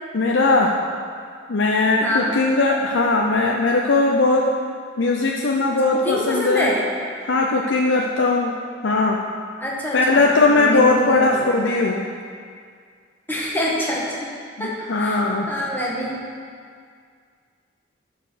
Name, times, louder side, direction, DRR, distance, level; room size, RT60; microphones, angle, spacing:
voice 1, 0.1-0.8 1.5-4.5 5.0-6.7 7.2-8.5 8.8-9.2 9.9-12.1 14.6-15.5, left 3 dB, 85° left, 0 dB, 0.7 m, -19 dB
voice 2, 2.0-2.3 6.0-6.8 9.6-11.6 13.3-14.3 14.6-15.2 15.5-16.1, left 1 dB, 10° left, -5 dB, 1.5 m, -26 dB
12.0 x 4.9 x 6.3 m, 2.1 s
head